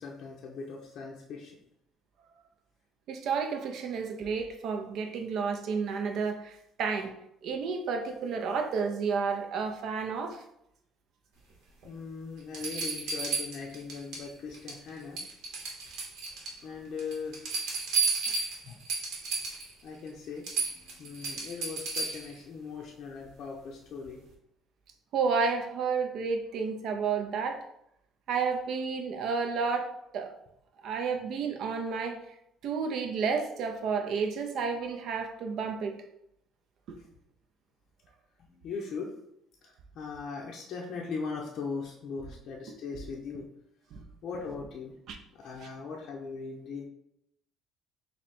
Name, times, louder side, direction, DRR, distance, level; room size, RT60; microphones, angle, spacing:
voice 1, 0.0-1.6 11.8-15.2 16.6-17.5 18.6-18.8 19.8-24.2 37.0-37.1 38.6-39.1 39.6-43.4 44.2-44.9 45.3-46.9, left 5 dB, 50° left, -2 dB, 0.5 m, -39 dB
voice 2, 3.1-7.1 7.4-10.4 18.3-18.5 25.1-27.6 28.3-30.3 30.8-32.2 32.6-36.0 43.9-44.0 45.1-45.2 45.6-45.7, right 5 dB, 55° right, 5 dB, 0.5 m, -31 dB
sound 1, 11.8-11.9 12.5-14.2 14.5-14.9 15.2-16.6 17.0-19.7 20.1-20.2 20.4-22.3 24.0-24.1, right 4 dB, 75° right, 1.1 m, -32 dB
3.2 x 2.7 x 4.2 m, 0.77 s
cardioid pair, 150°, 0 cm